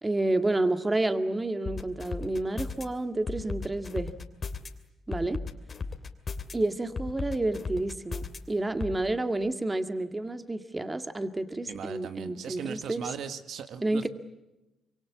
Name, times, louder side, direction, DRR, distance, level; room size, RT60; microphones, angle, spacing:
voice 1, 0.0-4.1 5.1-5.4 6.5-13.1 13.8-14.1, right 2 dB, 20° right, 8 dB, 1.9 m, -30 dB
sound 1, 1.7-2.8 3.3-4.7 5.1-6.5 7.0-8.4 8.8-9.0, left 4 dB, 45° left, 2.7 m, -35 dB
voice 2, 11.6-14.1, right 7 dB, 75° right, 9 dB, 1.5 m, -38 dB
26.0 x 23.5 x 8.4 m, 0.96 s
supercardioid pair, 70°, 0 cm